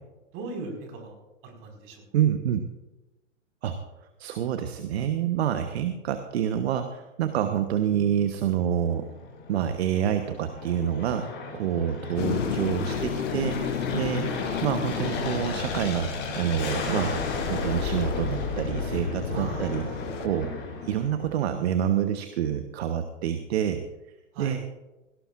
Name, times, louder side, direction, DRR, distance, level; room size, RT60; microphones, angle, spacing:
voice 1, 0.3-1.1 1.4-2.0 19.3-20.1 24.3-24.6, right 3 dB, 35° right, 2 dB, 5.1 m, -38 dB
voice 2, 2.1-2.6 3.6-3.8 4.2-9.1 9.5-14.3 14.6-19.9 20.2-20.5 20.8-23.8 24.4-24.6, right 9 dB, 55° right, 8 dB, 1.2 m, -27 dB
Aircraft, 8.8-21.5, left 4 dB, 30° left, 5.8 m, -33 dB
sound 1, 12.2-20.3, left 8 dB, 75° left, 1.0 m, -34 dB
18.0 x 17.0 x 2.5 m, 1.0 s
hypercardioid pair, 115°, 38 cm